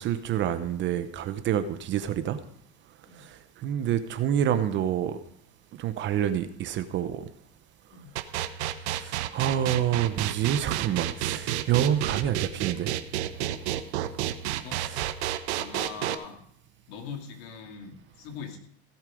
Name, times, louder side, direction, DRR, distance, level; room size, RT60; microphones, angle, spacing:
voice 1, 0.0-2.4 3.2-5.2 5.8-7.2 8.9-12.9 14.8-15.1, right 10 dB, 35° right, 11 dB, 0.8 m, -27 dB
sound 1, 8.2-16.2, right 13 dB, 75° right, 0.9 m, -30 dB
voice 2, 14.4-14.9 15.5-16.4 16.9-18.6, left 6 dB, 65° left, 3 dB, 2.6 m, -41 dB
16.0 x 7.4 x 5.1 m, 0.68 s
supercardioid pair, 135°, 34 cm